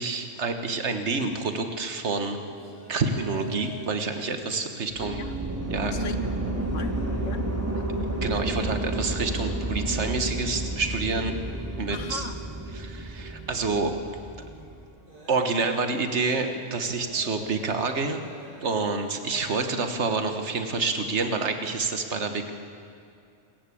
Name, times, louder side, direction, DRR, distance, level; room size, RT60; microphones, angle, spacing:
voice 1, 0.0-2.4 2.9-5.2 5.7-6.0 8.2-11.4 11.8-12.3 12.7-13.9 15.3-18.2 18.6-22.5, right 4 dB, 70° right, 7 dB, 1.8 m, -28 dB
sound 1, 2.2-21.8, equal, 40° right, 8.0 m, -49 dB
sound 2, 4.9-14.8, right 1 dB, 10° right, 2.5 m, -31 dB
voice 2, 5.0-5.3 5.8-6.9 7.2-7.4 11.9-12.3, left 5 dB, 85° left, 9 dB, 1.6 m, -38 dB
27.0 x 14.0 x 8.6 m, 2.4 s
omnidirectional pair, 1.2 m